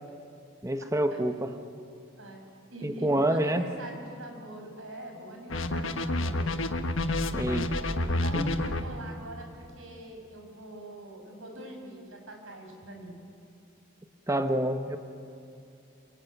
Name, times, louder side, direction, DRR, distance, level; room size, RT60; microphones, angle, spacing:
voice 1, 0.6-1.5 2.8-3.6 7.3-7.7 8.3-8.6 14.3-15.0, right 1 dB, 15° right, 8 dB, 1.1 m, -27 dB
voice 2, 2.7-6.5 7.7-13.2, right 1 dB, 70° right, 2 dB, 6.0 m, -43 dB
sound 1, 5.5-8.8, left 2 dB, 65° left, 1.4 m, -28 dB
27.5 x 23.0 x 9.3 m, 2.5 s
head